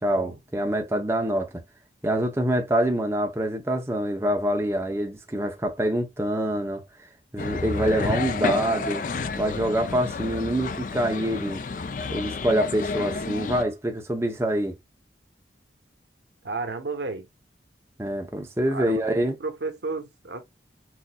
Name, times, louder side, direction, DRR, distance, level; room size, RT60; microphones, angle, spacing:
voice 1, 0.0-1.5 2.0-6.8 7.3-9.0 9.4-11.6 12.1-14.7 18.0-19.4, right 1 dB, 15° right, 0.6 m, -25 dB
sound 1, 7.4-13.6, left 4 dB, 45° left, 0.4 m, -30 dB
voice 2, 16.4-17.3 18.7-20.4, right 3 dB, 80° right, 1.0 m, -33 dB
6.2 x 2.6 x 2.2 m
head